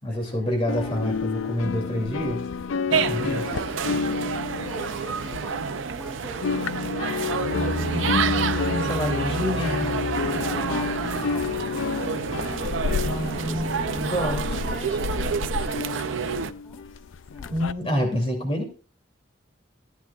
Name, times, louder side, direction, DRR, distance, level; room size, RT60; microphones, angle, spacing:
voice 1, 0.0-2.4 3.1-3.4 7.9-9.9 13.0-14.4 17.5-18.7, left 1 dB, 30° left, 2 dB, 2.7 m, -27 dB
sound 1, 0.7-6.0 6.3-17.7, left 5 dB, 85° left, 0.4 m, -30 dB
voice 2, 0.7-1.2 3.2-3.9 4.2-7.9 8.7-9.7 10.4-13.6 14.2-16.8 17.3-17.6, right 1 dB, 10° left, -1 dB, 2.7 m, -43 dB
sound 2, 2.9-16.5, right 6 dB, 80° right, 0.5 m, -29 dB
sound 3, 7.2-14.9, equal, 55° left, 3.8 m, -34 dB
14.5 x 10.0 x 2.4 m, 0.36 s
head